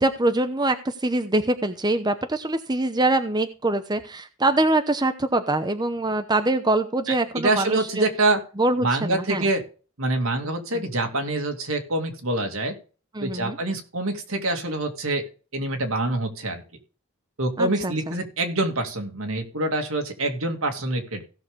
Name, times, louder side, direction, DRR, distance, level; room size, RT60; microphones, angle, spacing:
voice 1, 0.0-8.1 8.6-9.5 10.7-10.8 13.1-13.6 17.6-18.2, right 2 dB, 20° right, 9 dB, 0.8 m, -24 dB
voice 2, 7.3-8.4 8.8-9.6 10.0-12.8 13.2-15.2 15.5-16.6 17.4-21.2, right 2 dB, 80° right, 4 dB, 2.4 m, -25 dB
16.5 x 6.5 x 3.6 m, 0.37 s
head